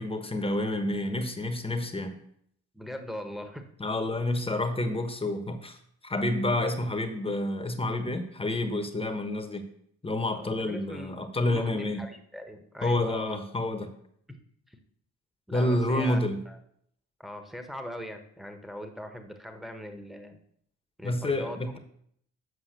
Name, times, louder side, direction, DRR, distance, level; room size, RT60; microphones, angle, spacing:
voice 1, 0.0-2.1 3.8-5.8 6.0-9.7 10.0-12.0 12.8-13.9 15.5-16.4 21.0-21.8, left 1 dB, 20° left, 6 dB, 1.2 m, -29 dB
voice 2, 2.7-3.7 4.1-4.3 10.3-11.2 11.5-13.4 14.3-14.4 14.7-14.8 15.5-16.2 16.5-16.6 17.2-20.4 21.0-21.7, equal, ahead, 6 dB, 1.2 m, -40 dB
7.8 x 5.5 x 6.7 m, 0.69 s
cardioid pair, 90°, 30 cm